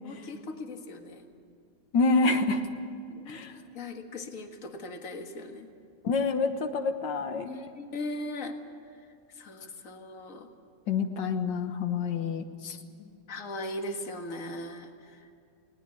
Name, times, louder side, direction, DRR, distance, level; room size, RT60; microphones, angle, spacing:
voice 1, 0.0-1.2 3.1-3.4 3.7-5.7 7.2-8.6 9.3-10.5 13.0-15.3, left 2 dB, 50° left, 5 dB, 2.0 m, -39 dB
voice 2, 1.9-2.6 3.3-3.6 6.0-7.5 10.9-12.8, left 4 dB, 85° left, 7 dB, 1.9 m, -27 dB
20.5 x 18.5 x 8.6 m, 2.4 s
omnidirectional pair, 1.9 m